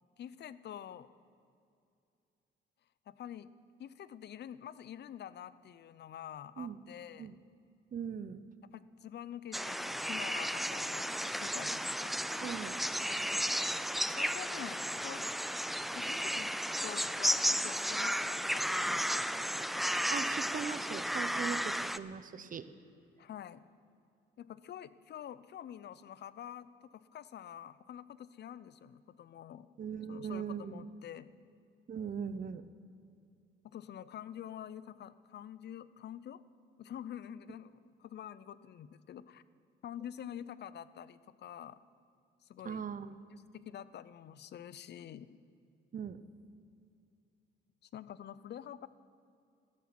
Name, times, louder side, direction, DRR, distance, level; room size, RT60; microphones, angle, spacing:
voice 1, 0.2-1.1 3.1-3.5 3.8-7.3 8.7-12.1 13.2-13.4 14.1-15.3 15.9-16.5 16.8-19.3 23.2-23.6 24.4-29.7 30.1-31.3 33.6-36.4 36.8-39.4 39.8-41.8 42.5-42.8 43.3-45.3 47.8-48.9, left 10 dB, 60° left, 17 dB, 0.6 m, -47 dB
voice 2, 7.9-8.4 12.4-12.8 20.1-22.7 29.8-30.8 31.9-32.6 42.6-43.2 45.9-46.2, right 7 dB, 45° right, 13 dB, 0.8 m, -39 dB
sound 1, 9.5-22.0, equal, ahead, 0.4 m, -34 dB
13.5 x 13.0 x 6.1 m, 2.5 s
cardioid pair, 90°, 20 cm